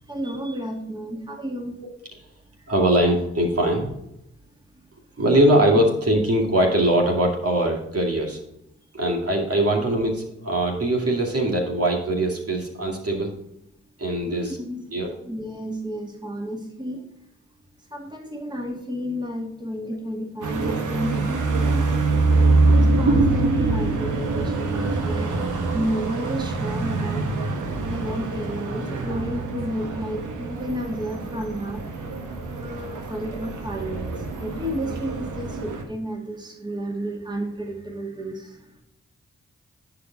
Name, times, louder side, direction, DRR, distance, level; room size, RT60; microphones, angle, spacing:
voice 1, 0.1-1.8 14.2-14.8 15.3-17.1 17.9-22.2 22.7-25.4 25.7-27.2 27.8-31.9 32.6-38.6, equal, 15° right, 2 dB, 2.1 m, -31 dB
voice 2, 2.7-3.9 5.2-8.4 8.9-13.3 14.0-14.6 14.9-15.1, right 1 dB, 50° right, 0 dB, 2.3 m, -21 dB
sound 1, 20.4-35.8, right 3 dB, 85° right, 1.2 m, -24 dB
10.0 x 4.9 x 4.0 m, 0.79 s
supercardioid pair, 40°, 30 cm